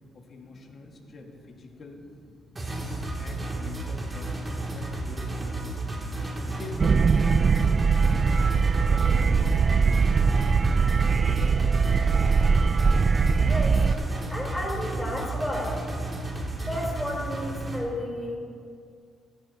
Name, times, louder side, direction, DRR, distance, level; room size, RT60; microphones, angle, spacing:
voice 1, 0.1-2.0 2.7-6.0 6.4-8.3 8.8-10.9 11.2-12.4, left 3 dB, 50° left, 1 dB, 1.7 m, -45 dB
voice 2, 0.8-1.1 6.2-6.4 11.1-11.3 13.4-13.9 14.3-15.8 16.7-18.4, left 1 dB, 10° left, -2 dB, 3.6 m, -33 dB
sound 1, 2.6-17.8, right 2 dB, 25° right, 2.4 m, -33 dB
sound 2, 6.8-13.9, right 5 dB, 40° right, 0.3 m, -21 dB
15.5 x 13.0 x 2.8 m, 2.2 s
cardioid pair, 90°, 0 cm